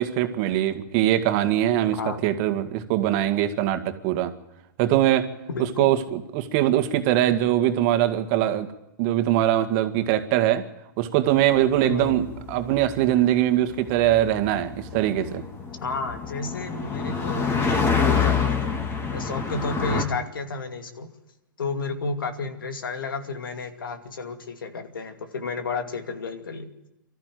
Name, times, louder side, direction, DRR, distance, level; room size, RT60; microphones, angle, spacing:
voice 1, 0.0-4.3 4.8-5.3 5.6-8.7 9.0-10.6 11.0-15.4, right 12 dB, 45° right, 8 dB, 1.9 m, -22 dB
voice 2, 5.5-5.9 11.8-12.2 15.8-18.8 19.1-21.1 21.6-26.7, left 4 dB, 90° left, 6 dB, 2.5 m, -32 dB
sound 1, 11.5-20.0, left 5 dB, 20° left, 3.2 m, -27 dB
24.0 x 14.0 x 9.4 m, 0.94 s
hypercardioid pair, 130°, 11 cm